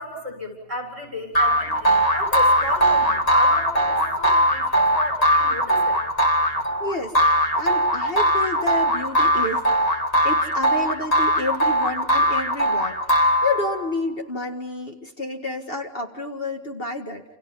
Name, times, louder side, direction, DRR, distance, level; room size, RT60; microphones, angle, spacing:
voice 1, 0.0-6.0, equal, 50° right, 3 dB, 7.7 m, -33 dB
sound 1, 1.3-13.9, equal, 25° left, 2.5 m, -20 dB
voice 2, 6.8-7.2 7.6-17.2, left 2 dB, 45° left, 3 dB, 2.1 m, -30 dB
29.5 x 29.0 x 5.5 m, 0.83 s
omnidirectional pair, 1.4 m